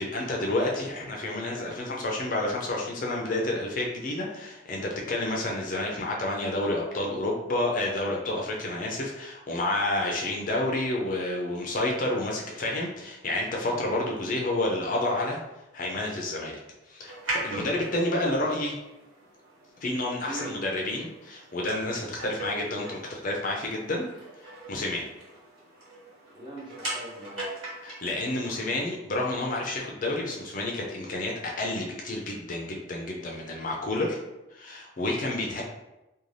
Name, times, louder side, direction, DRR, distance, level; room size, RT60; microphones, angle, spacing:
voice 1, 0.0-15.4 15.7-16.6 16.9-18.7 19.8-24.1 24.7-25.1 27.8-34.2 34.5-35.6, left 2 dB, 40° left, -1 dB, 0.4 m, -29 dB
sound 1, 17.0-28.6, right 1 dB, 75° right, 1.4 m, -40 dB
voice 2, 17.7-18.4 20.2-20.6 26.3-27.5, right 1 dB, 25° right, -4 dB, 0.6 m, -41 dB
2.5 x 2.2 x 3.2 m, 0.96 s
head